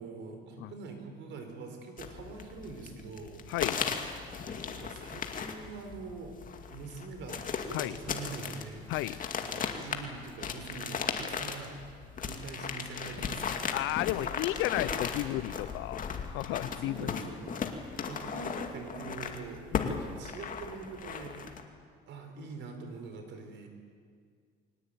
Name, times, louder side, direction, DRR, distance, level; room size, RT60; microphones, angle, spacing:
voice 1, 0.0-3.4 4.2-6.4 6.7-11.8 12.2-13.7 16.5-17.7 18.1-21.7 22.1-23.7, right 4 dB, 65° right, 5 dB, 4.9 m, -44 dB
sound 1, 2.0-21.6, left 6 dB, 45° left, 2.3 m, -37 dB
voice 2, 3.5-3.9 7.7-8.0 8.9-9.2 13.7-16.0 16.3-17.2 17.5-17.8 19.7-20.0, left 16 dB, 80° left, 18 dB, 0.7 m, -33 dB
23.0 x 18.5 x 9.1 m, 2.1 s
cardioid pair, 105°, 20 cm